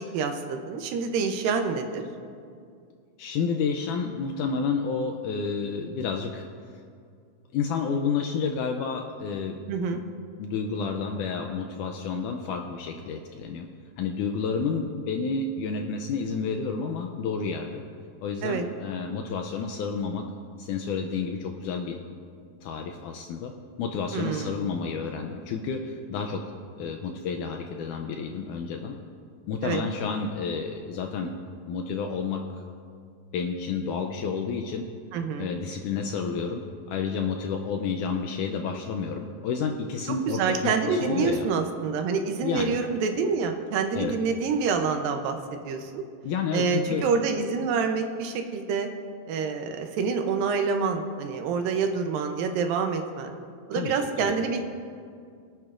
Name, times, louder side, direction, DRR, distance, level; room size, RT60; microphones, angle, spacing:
voice 1, 0.0-2.0 9.7-10.0 18.4-18.7 24.1-24.6 29.6-29.8 35.1-35.5 40.3-45.4 45.6-46.0 46.5-48.9 49.3-53.4 53.7-54.6, right 5 dB, 80° right, 5 dB, 2.5 m, -27 dB
voice 2, 3.2-6.5 7.5-9.6 9.9-10.0 10.4-13.7 14.0-17.8 18.2-20.2 20.6-22.0 22.6-23.5 23.8-29.0 29.5-31.3 31.7-32.6 33.3-34.9 35.4-41.5 42.4-42.8 43.9-44.1 46.2-47.1 53.7-53.9 54.2-54.3, left 5 dB, 80° left, 4 dB, 1.8 m, -30 dB
23.5 x 8.9 x 2.5 m, 2.3 s
omnidirectional pair, 4.1 m